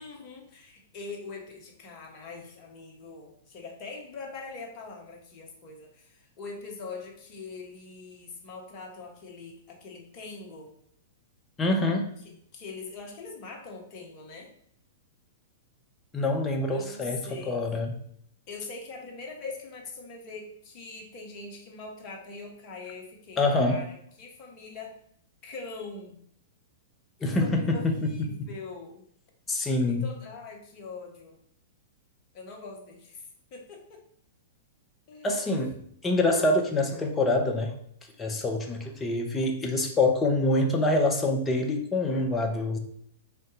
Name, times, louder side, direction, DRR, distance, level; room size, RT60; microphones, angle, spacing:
voice 1, 0.0-10.7 12.2-14.5 16.7-17.6 18.5-25.0 25.4-26.2 27.2-29.0 29.9-31.4 32.3-34.0 35.1-35.5, left 4 dB, 35° left, 1 dB, 0.9 m, -43 dB
voice 2, 11.6-12.1 16.1-18.0 23.4-23.8 27.2-28.1 28.4-28.5 29.5-30.1 35.2-35.7 36.0-37.8 38.2-42.8, left 2 dB, 15° left, 3 dB, 0.6 m, -25 dB
3.7 x 2.2 x 3.8 m, 0.67 s
figure-of-eight pair, 105°, 0 cm